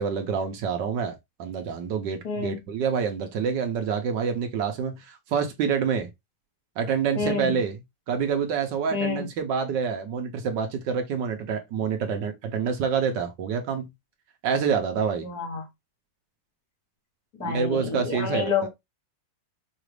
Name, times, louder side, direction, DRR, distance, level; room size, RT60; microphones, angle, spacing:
voice 1, 0.0-6.1 6.8-7.8 8.1-13.9 14.4-15.2 17.4-18.5, right 6 dB, 75° right, 1.4 m, -27 dB
voice 2, 2.2-2.6 7.2-7.5 8.9-9.3 15.2-15.7 17.4-18.7, left 5 dB, 55° left, 1.7 m, -28 dB
5.0 x 2.5 x 3.2 m
omnidirectional pair, 2.0 m